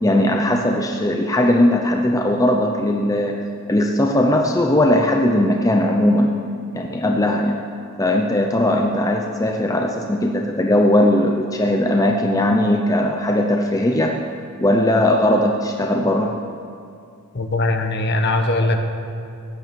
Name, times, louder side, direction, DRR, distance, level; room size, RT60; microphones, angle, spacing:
voice 1, 0.0-3.4 3.7-6.4 6.7-7.6 8.0-14.2 14.6-16.4 18.6-18.8, left 1 dB, 15° left, 2 dB, 0.6 m, -18 dB
voice 2, 17.3-18.8, left 2 dB, 50° left, 6 dB, 1.2 m, -20 dB
16.0 x 9.8 x 6.9 m, 2.4 s
head